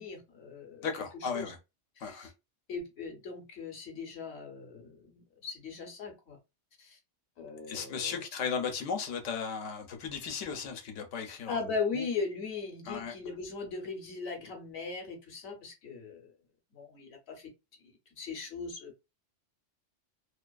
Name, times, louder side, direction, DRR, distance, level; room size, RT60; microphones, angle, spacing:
voice 1, 0.0-0.9 1.1-1.5 2.0-2.3 2.7-6.4 6.8-7.0 7.4-8.2 11.5-16.3 16.7-17.5 17.8-19.1, left 4 dB, 65° left, 1.0 m, -39 dB
voice 2, 0.8-1.6 2.0-2.3 7.7-12.1 12.9-13.1, left 6 dB, 85° left, 1.0 m, -36 dB
2.5 x 2.4 x 2.3 m
omnidirectional pair, 1.2 m